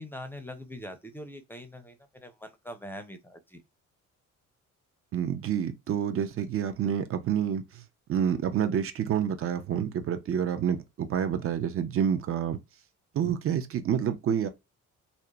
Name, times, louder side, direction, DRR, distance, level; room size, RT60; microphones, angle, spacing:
voice 1, 0.0-3.6, left 1 dB, 5° left, 0.5 m, -43 dB
voice 2, 5.1-7.8 8.1-12.6 13.1-14.5, right 8 dB, 50° right, 0.5 m, -28 dB
2.8 x 2.0 x 2.2 m
cardioid pair, 90°, 30 cm